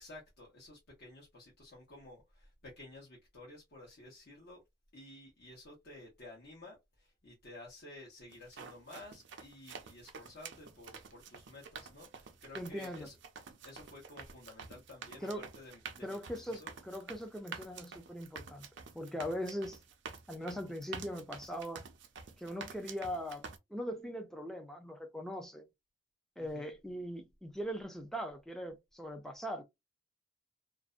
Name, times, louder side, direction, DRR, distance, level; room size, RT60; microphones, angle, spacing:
voice 1, 0.0-4.6 4.9-13.2 13.6-16.7 26.4-26.7, left 2 dB, 55° left, 0.9 m, -53 dB
sound 1, 8.3-23.6, right 5 dB, 60° right, 0.5 m, -49 dB
voice 2, 12.5-13.1 15.2-15.5 16.0-18.7 18.9-19.8 20.3-21.8 22.4-23.4 23.7-25.7 26.4-29.6, equal, ahead, 0.4 m, -40 dB
2.4 x 2.1 x 2.4 m
head